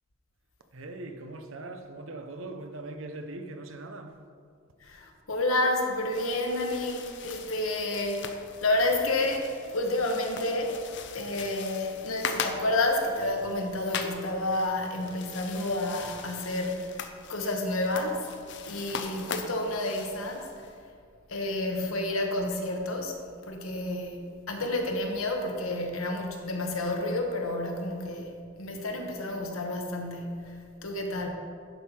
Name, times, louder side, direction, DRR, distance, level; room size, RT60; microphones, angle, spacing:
voice 1, 0.7-4.2, right 2 dB, 70° right, 7 dB, 0.8 m, -40 dB
voice 2, 4.8-10.8 11.1-16.9 17.3-18.3 18.7-20.7 21.3-23.2 23.4-31.3, left 2 dB, 80° left, 2 dB, 1.2 m, -30 dB
sound 1, 5.9-20.7, left 6 dB, 60° left, 0.6 m, -41 dB
10.5 x 5.7 x 4.3 m, 2.2 s
head